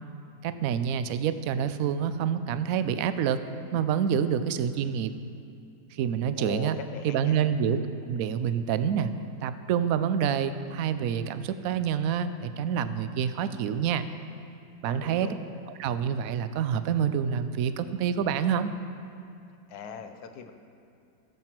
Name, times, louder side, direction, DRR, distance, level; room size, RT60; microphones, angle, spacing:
voice 1, 0.4-3.4 3.7-5.1 5.9-6.8 7.0-7.8 8.1-9.1 9.4-14.0 14.8-15.3 15.8-18.7, right 8 dB, 70° right, 11 dB, 0.9 m, -27 dB
voice 2, 6.4-7.5 14.9-15.4 19.7-20.5, left 6 dB, 75° left, 7 dB, 1.3 m, -40 dB
15.5 x 7.6 x 4.5 m, 2.4 s
omnidirectional pair, 1.7 m